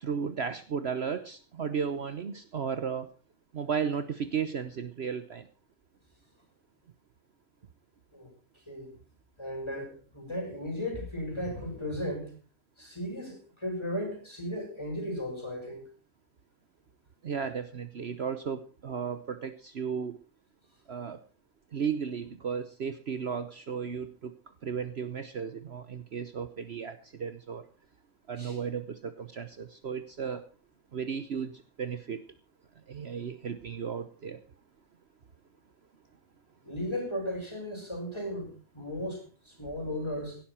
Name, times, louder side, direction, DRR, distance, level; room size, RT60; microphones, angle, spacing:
voice 1, 0.0-3.1 3.5-5.4 17.2-20.2 20.9-21.2 21.7-24.3 24.6-27.6 28.3-30.4 30.9-31.5 31.8-32.2 32.9-34.4, right 6 dB, 55° right, 11 dB, 1.1 m, -34 dB
voice 2, 9.4-12.3 12.8-15.9 28.4-28.6 36.6-40.4, left 1 dB, 20° left, 2 dB, 5.9 m, -36 dB
16.5 x 12.0 x 4.4 m, 0.36 s
omnidirectional pair, 1.4 m